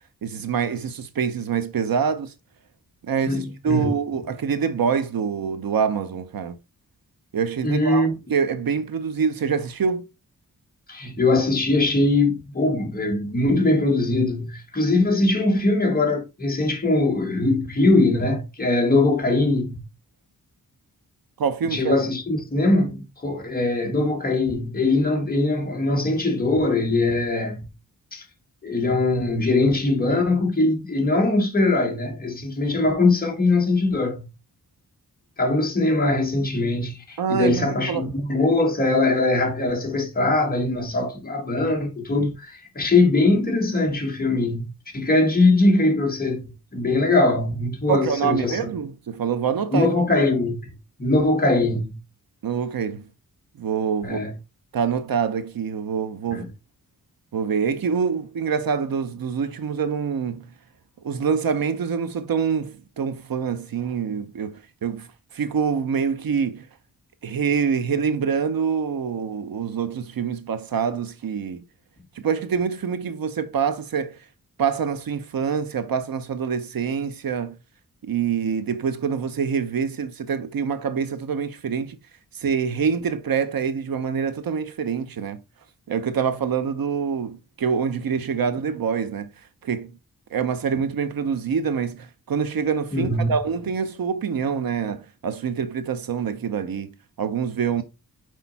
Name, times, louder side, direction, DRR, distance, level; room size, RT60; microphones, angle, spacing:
voice 1, 0.2-2.3 3.0-6.6 7.3-8.0 8.3-10.1 21.4-22.1 37.2-38.1 47.9-49.9 52.4-53.1 53.6-54.2 54.7-56.5 57.3-60.5 61.0-66.7 67.2-71.6 72.2-74.2 74.6-77.6 78.0-82.0 82.3-85.4 85.9-89.3 89.6-89.9 90.3-97.8, right 6 dB, 75° right, 0.9 m, -25 dB
voice 2, 3.2-3.9 7.6-8.1 10.9-19.8 21.7-27.6 28.1-28.3 28.6-34.3 35.4-44.7 44.9-48.6 49.7-50.6 51.0-52.0 54.0-54.3 56.3-56.5 92.9-93.3, left 2 dB, 25° left, 1.8 m, -21 dB
6.6 x 4.6 x 4.1 m
wide cardioid pair, 170°, 35 cm